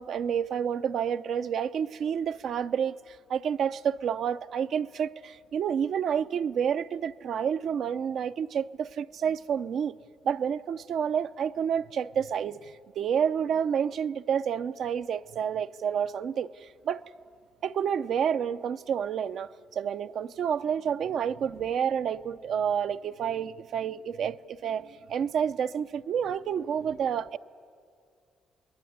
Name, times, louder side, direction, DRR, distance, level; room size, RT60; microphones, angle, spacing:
voice 1, 0.0-10.0 10.2-17.0 17.6-27.4, right 8 dB, 70° right, 0.6 m, -29 dB
29.0 x 21.0 x 9.5 m
supercardioid pair, 70°, 0 cm